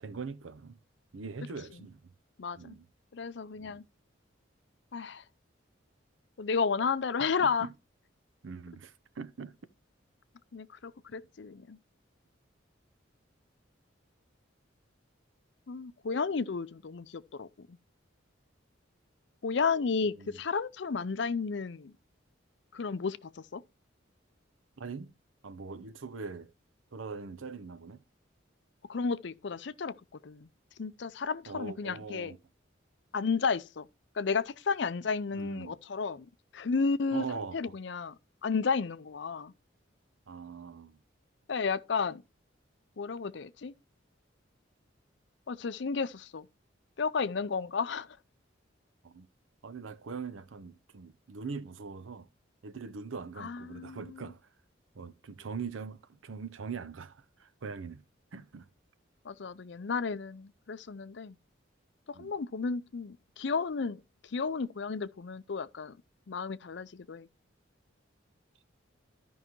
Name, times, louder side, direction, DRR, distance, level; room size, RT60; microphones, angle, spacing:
voice 1, 0.0-0.8 1.1-2.0 2.6-2.9 3.6-3.8 7.4-7.7 8.4-9.6 20.2-20.4 24.8-25.1 25.4-26.5 26.9-28.0 31.5-32.4 35.3-35.8 37.1-37.6 40.3-41.0 49.0-49.3 49.6-52.3 52.6-54.4 54.9-58.0 58.3-58.7 62.1-62.3, right 5 dB, 85° right, 0.6 m, -42 dB
voice 2, 2.4-2.8 3.1-3.8 4.9-5.2 6.4-7.7 10.5-11.8 15.7-17.8 19.4-21.9 22.7-23.6 28.9-30.5 30.8-32.3 33.1-33.9 34.2-36.3 36.5-38.1 38.4-39.5 41.5-42.2 43.0-43.7 45.5-46.5 47.0-48.1 53.4-54.3 59.3-61.4 62.2-64.0 64.3-66.0 66.3-67.3, left 5 dB, 65° left, 0.5 m, -33 dB
13.0 x 5.5 x 3.0 m
head